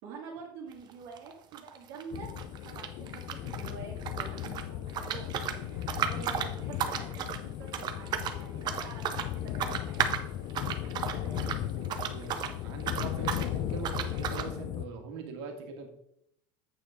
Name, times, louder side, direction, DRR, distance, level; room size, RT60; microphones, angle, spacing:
voice 1, 0.0-2.3 2.6-10.2, right 5 dB, 55° right, -5 dB, 2.0 m, -47 dB
sound 1, 0.7-3.7 4.0-12.5 12.8-13.5 13.8-14.5, right 9 dB, 30° right, 0.6 m, -34 dB
sound 2, 2.1-14.9, left 11 dB, 45° left, 0.5 m, -36 dB
voice 2, 11.1-15.9, right 5 dB, 80° right, 3 dB, 1.8 m, -43 dB
8.2 x 6.7 x 3.6 m, 0.74 s
cardioid pair, 160°, 13 cm